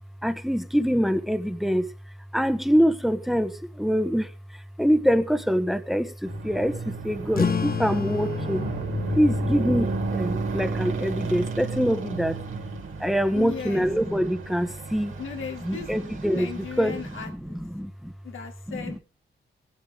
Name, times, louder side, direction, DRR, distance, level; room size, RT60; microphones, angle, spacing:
voice 1, 0.2-1.9 2.3-8.6 9.1-12.4 13.0-15.1 15.6-18.1 18.7-19.0, equal, ahead, 10 dB, 1.5 m, -25 dB
sound 1, 6.2-17.2, right 3 dB, 80° right, 3.6 m, -32 dB
sound 2, 7.3-12.4, left 6 dB, 50° left, 1.5 m, -32 dB
voice 2, 13.3-13.9 15.2-15.9 16.3-17.6 18.2-19.0, left 7 dB, 85° left, 3 dB, 2.8 m, -36 dB
17.5 x 11.5 x 3.6 m, 0.31 s
cardioid pair, 75°, 20 cm